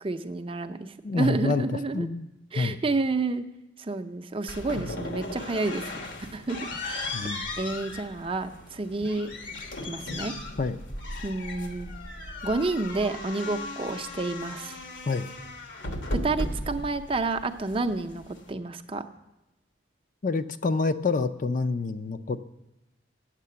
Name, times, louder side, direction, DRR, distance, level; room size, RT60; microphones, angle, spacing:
voice 1, 0.0-0.9 1.1-2.1 2.5-3.4 3.8-5.9 6.3-6.6 6.9-7.0 7.6-9.3 9.8-10.3 11.2-11.9 12.4-14.8 16.1-19.0, right 3 dB, 30° right, 8 dB, 0.5 m, -29 dB
voice 2, 1.0-1.6 1.9-2.3 2.5-2.8 7.1-7.5 10.6-10.8 15.1-15.3 20.2-22.4, left 4 dB, 45° left, 11 dB, 0.4 m, -27 dB
sound 1, 4.5-18.5, left 2 dB, 80° left, 1.2 m, -37 dB
9.2 x 7.5 x 6.8 m, 0.94 s
head